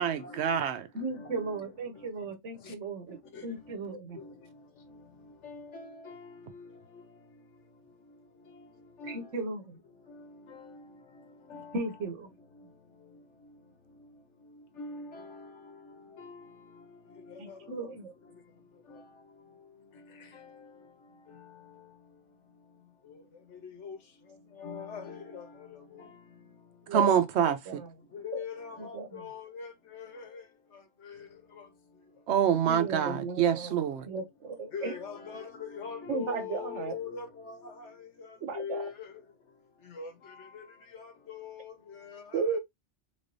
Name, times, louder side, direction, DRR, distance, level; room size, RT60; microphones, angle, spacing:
voice 1, 0.0-0.9 26.9-27.8 32.3-34.1, right 9 dB, 70° right, 0.9 m, -26 dB
voice 2, 0.9-3.2 3.4-4.2 9.1-9.8 11.7-12.3 17.4-18.1 26.9-27.1 27.4-27.9 28.3-28.4 28.8-29.2 32.6-33.7 34.0-34.9 36.1-36.9 38.4-38.8 42.3-42.6, right 3 dB, 90° right, 1.2 m, -35 dB
voice 3, 5.4-6.2 6.5-6.7 9.0-9.2 11.5-11.6 14.8-15.2 16.2-16.4 23.8-24.0 24.6-25.4 28.2-30.2 34.7-37.6 38.5-38.9 40.0-40.1 41.3-41.7, left 6 dB, 80° left, 1.3 m, -40 dB
3.6 x 3.3 x 2.6 m
omnidirectional pair, 1.2 m